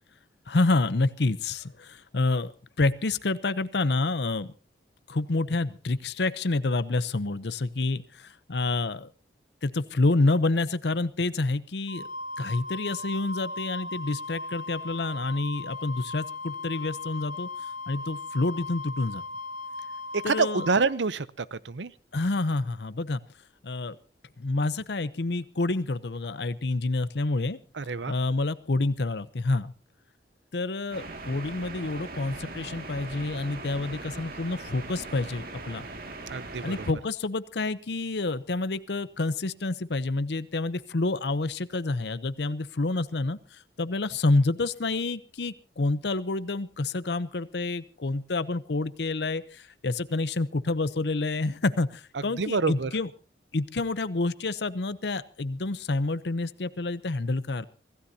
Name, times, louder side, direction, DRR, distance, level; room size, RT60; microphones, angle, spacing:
voice 1, 0.5-2.5 2.8-4.5 5.1-8.0 8.5-9.1 9.6-12.0 12.4-17.5 17.9-19.2 20.2-20.7 22.1-23.2 23.6-24.0 24.4-27.6 28.1-29.7 30.5-35.8 36.6-43.4 43.8-49.4 49.8-53.1 53.5-57.7, left 2 dB, 70° left, 15 dB, 0.8 m, -28 dB
Wind instrument woodwind instrument, 11.9-20.8, left 2 dB, 45° left, 1.3 m, -37 dB
voice 2, 20.3-21.9 27.7-28.1 36.3-36.9 52.4-52.9, right 4 dB, 90° right, 17 dB, 0.7 m, -27 dB
sound 1, 30.9-36.9, right 2 dB, 55° right, 2.3 m, -40 dB
25.5 x 16.0 x 2.8 m, 0.35 s
head